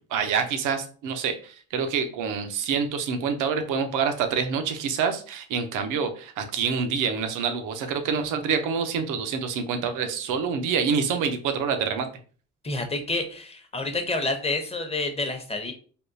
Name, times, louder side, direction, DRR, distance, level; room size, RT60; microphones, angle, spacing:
voice 1, 0.1-12.1, right 6 dB, 90° right, 7 dB, 0.6 m, -27 dB
voice 2, 12.6-15.7, left 2 dB, 20° left, 5 dB, 0.6 m, -28 dB
3.5 x 2.3 x 2.6 m, 0.41 s
cardioid pair, 90°, 30 cm